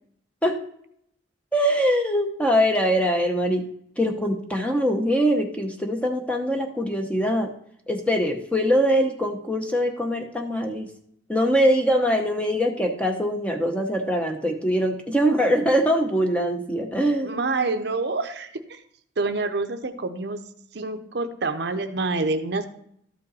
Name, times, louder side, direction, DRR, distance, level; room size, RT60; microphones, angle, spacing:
voice 1, 1.5-3.7 4.0-7.5 7.9-10.9 11.3-17.4, equal, 5° left, 3 dB, 0.8 m, -23 dB
voice 2, 17.2-18.8 19.2-20.4 20.7-22.7, right 3 dB, 60° right, 8 dB, 0.7 m, -27 dB
12.5 x 5.3 x 4.1 m, 0.70 s
head